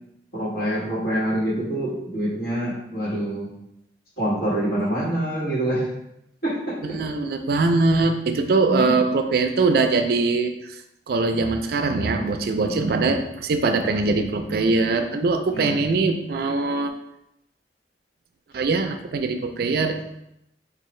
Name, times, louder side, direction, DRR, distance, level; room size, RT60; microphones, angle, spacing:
voice 1, 0.3-3.5 4.2-5.9 6.4-7.0 7.9-8.1 8.7-9.0 12.6-12.8 15.5-15.7, right 1 dB, 55° left, -6 dB, 1.4 m, -26 dB
voice 2, 6.8-10.5 11.1-16.9 18.5-20.0, right 3 dB, 60° right, 6 dB, 0.3 m, -22 dB
4.6 x 2.4 x 3.1 m, 0.82 s
head